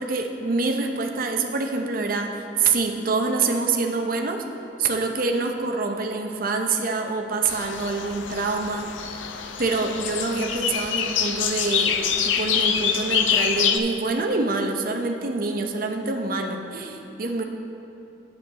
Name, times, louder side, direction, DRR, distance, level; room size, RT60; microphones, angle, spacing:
voice 1, 0.0-4.4 4.8-8.9 9.6-12.0 12.2-17.4, right 3 dB, 50° right, 4 dB, 0.7 m, -26 dB
sound 1, 7.5-13.8, left 7 dB, 90° left, 0.5 m, -25 dB
9.2 x 7.9 x 4.0 m, 3.0 s
head